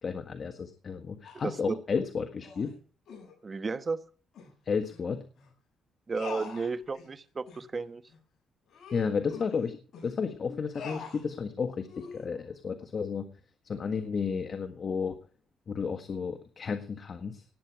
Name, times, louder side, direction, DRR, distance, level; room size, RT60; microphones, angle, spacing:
voice 1, 0.0-2.7 4.6-5.2 8.9-13.3 13.6-15.2 15.7-17.4, left 5 dB, 45° left, 8 dB, 1.6 m, -32 dB
sound 1, 1.2-1.6 2.4-2.7 3.1-3.3 4.3-4.5 4.9-5.0 5.4-5.5 6.2-7.1 7.5-7.7 8.1-8.2 8.7-10.1 10.7-11.3 11.9-12.3, left 5 dB, 65° left, 7.0 m, -44 dB
voice 2, 1.4-1.8 3.4-4.0 6.1-8.0, right 4 dB, 35° right, 11 dB, 1.1 m, -33 dB
18.5 x 9.8 x 4.8 m, 0.41 s
cardioid pair, 90°, 0 cm